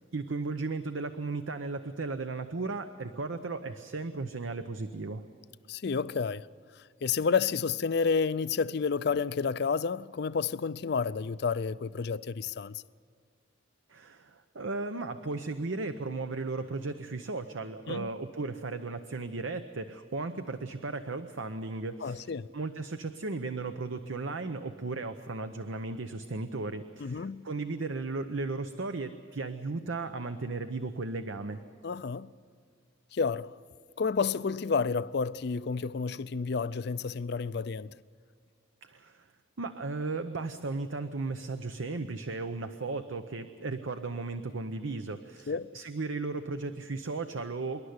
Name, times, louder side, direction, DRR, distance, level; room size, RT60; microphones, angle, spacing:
voice 1, 0.1-5.2 13.9-31.6 38.8-39.3 39.6-47.8, right 3 dB, 80° right, 0.8 m, -35 dB
voice 2, 5.7-6.5 7.0-12.8 17.9-18.1 22.0-22.5 27.0-27.4 31.8-32.3 33.1-33.6 34.0-38.0 45.5-45.7, left 5 dB, 55° left, 0.4 m, -30 dB
26.0 x 11.5 x 9.5 m
head